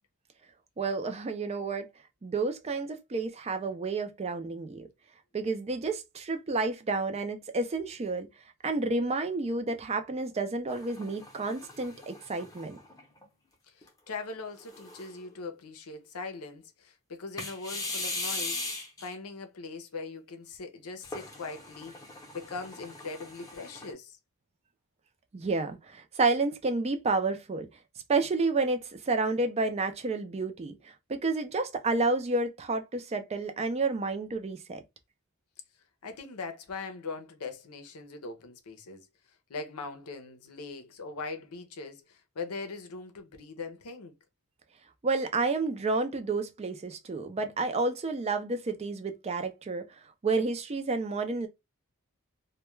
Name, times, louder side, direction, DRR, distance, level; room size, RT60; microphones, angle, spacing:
voice 1, 0.8-1.9 2.2-4.9 5.3-8.3 8.6-12.8 25.3-27.7 28.1-34.8 45.0-49.8 50.2-51.5, right 3 dB, 30° right, 0.4 m, -30 dB
sound 1, 10.7-13.2 13.8-13.9 14.6-15.3 17.4-19.1 21.0-23.9, left 2 dB, 15° left, 0.7 m, -39 dB
voice 2, 13.7-24.2 36.0-39.1 39.5-44.1, left 4 dB, 90° left, 0.6 m, -41 dB
2.2 x 2.2 x 3.0 m
head